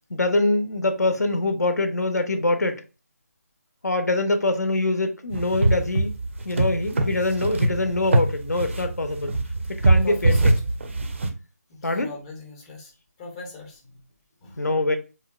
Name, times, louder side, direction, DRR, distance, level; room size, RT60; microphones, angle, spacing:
voice 1, 0.1-2.8 3.8-6.1 6.4-9.3 9.7-10.5 11.8-12.1 14.6-15.0, left 2 dB, 75° left, 0.4 m, -24 dB
sound 1, 5.3-11.3, right 2 dB, 45° right, 0.4 m, -22 dB
voice 2, 10.0-10.5 11.7-12.9 13.2-14.0 14.4-14.8, left 3 dB, 15° left, 0.4 m, -39 dB
2.6 x 2.0 x 2.3 m
figure-of-eight pair, 155°, 9 cm